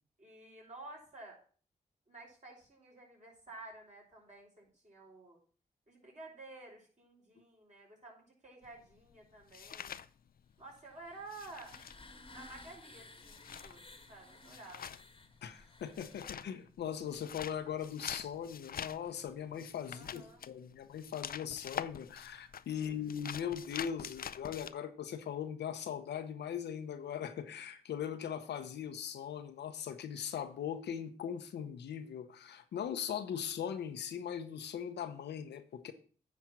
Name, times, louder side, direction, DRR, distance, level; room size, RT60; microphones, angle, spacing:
voice 1, 0.2-1.4 2.1-5.4 5.9-10.0 10.6-11.7 12.3-13.8 14.1-15.0 19.9-20.5 22.8-23.1, right 2 dB, 45° right, 4.7 m, -52 dB
sound 1, 8.6-10.8 11.1-24.7, left 8 dB, 60° left, 0.4 m, -46 dB
sound 2, 10.8-16.6, left 2 dB, 30° left, 1.2 m, -56 dB
voice 2, 15.4-35.9, left 8 dB, 90° left, 0.8 m, -40 dB
9.4 x 4.3 x 6.1 m
supercardioid pair, 40°, 17 cm